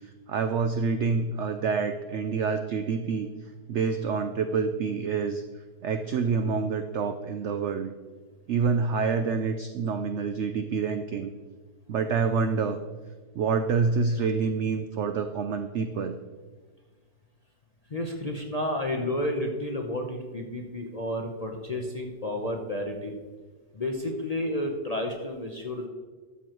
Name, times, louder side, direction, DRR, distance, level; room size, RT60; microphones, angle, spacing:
voice 1, 0.3-3.3 3.7-5.4 5.8-7.9 8.5-11.3 11.9-12.8 13.4-16.2, right 5 dB, 75° right, 8 dB, 0.6 m, -27 dB
voice 2, 17.9-23.1 23.7-25.9, left 1 dB, 40° left, 1 dB, 0.6 m, -31 dB
12.5 x 7.0 x 3.0 m, 1.4 s
omnidirectional pair, 1.7 m